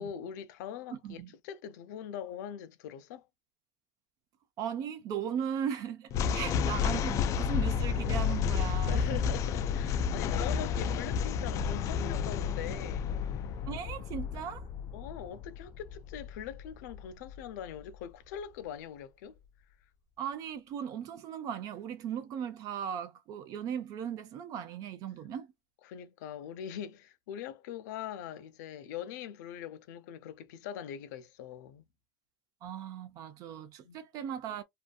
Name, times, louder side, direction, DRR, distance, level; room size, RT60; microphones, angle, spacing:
voice 1, 0.0-3.3 6.2-6.4 8.9-13.1 14.9-19.4 25.8-31.9 33.8-34.0, left 9 dB, 85° left, 0.6 m, -42 dB
voice 2, 4.6-9.1 13.7-14.6 20.2-25.5 32.6-34.6, right 8 dB, 40° right, 0.4 m, -37 dB
sound 1, 6.1-17.4, left 7 dB, 35° left, 0.3 m, -31 dB
2.6 x 2.5 x 2.2 m
supercardioid pair, 155°, 9 cm